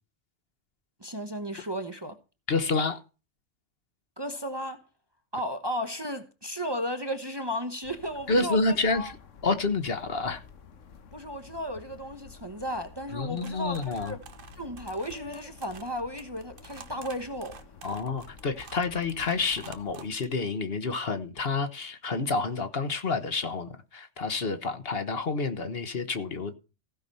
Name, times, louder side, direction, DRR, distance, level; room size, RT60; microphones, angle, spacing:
voice 1, 1.0-2.2 4.2-4.8 5.3-9.1 11.1-14.2 14.6-17.6, equal, 20° right, 0.9 m, -34 dB
voice 2, 2.5-3.0 8.3-9.2 9.4-10.4 13.1-14.1 17.8-26.5, left 3 dB, 55° left, 1.4 m, -29 dB
sound 1, 7.8-20.0, left 6 dB, 85° left, 1.4 m, -51 dB
sound 2, 13.4-20.3, right 5 dB, 50° right, 1.2 m, -50 dB
15.5 x 5.9 x 5.5 m
omnidirectional pair, 1.2 m